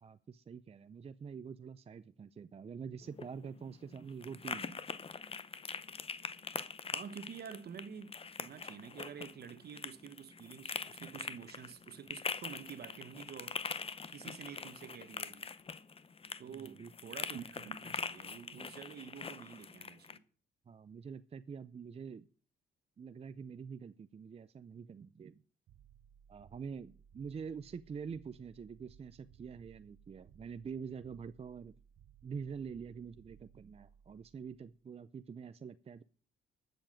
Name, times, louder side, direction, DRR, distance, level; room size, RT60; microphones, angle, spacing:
voice 1, 0.0-4.8 16.4-16.9 20.7-22.3 23.0-25.4 26.3-31.7 32.2-36.0, right 6 dB, 30° right, 0.5 m, -46 dB
sound 1, 3.0-20.2, left 5 dB, 30° left, 0.8 m, -43 dB
voice 2, 6.9-8.1 8.4-13.6 14.1-15.5 16.4-20.2, right 7 dB, 55° right, 1.1 m, -49 dB
sound 2, 25.7-34.8, right 9 dB, 70° right, 0.9 m, -62 dB
13.0 x 7.1 x 7.6 m
cardioid pair, 90°, 20 cm